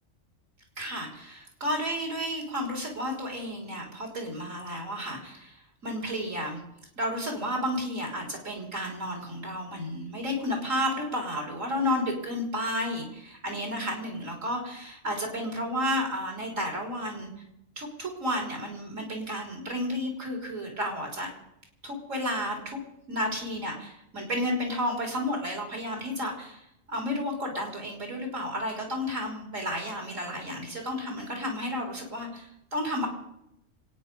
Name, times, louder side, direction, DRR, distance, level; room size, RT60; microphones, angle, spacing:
voice 1, 0.8-6.6 7.0-17.3 17.8-21.3 21.8-22.8 23.1-26.6 26.9-33.1, equal, 75° right, 0 dB, 4.2 m, -32 dB
25.5 x 9.6 x 5.4 m, 0.81 s
omnidirectional pair, 1.3 m